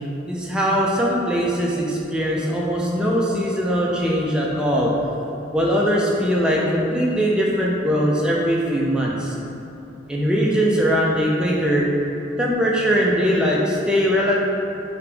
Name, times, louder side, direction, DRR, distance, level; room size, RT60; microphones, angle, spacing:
voice 1, 0.3-4.9 5.5-9.3 10.1-11.9 12.4-14.4, equal, 5° right, -4 dB, 0.4 m, -21 dB
3.3 x 2.9 x 3.3 m, 2.8 s
head